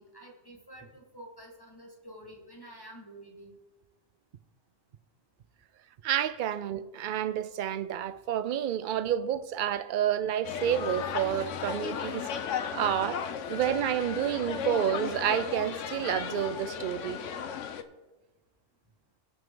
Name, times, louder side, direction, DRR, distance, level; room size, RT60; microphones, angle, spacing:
voice 1, 0.0-3.5, right 1 dB, 20° left, 1.7 m, -49 dB
voice 2, 6.0-12.3 12.7-13.2 13.5-17.2, right 10 dB, 60° right, 0.5 m, -29 dB
sound 1, 10.4-17.8, left 8 dB, 75° left, 1.0 m, -35 dB
18.5 x 6.2 x 3.8 m
omnidirectional pair, 1.3 m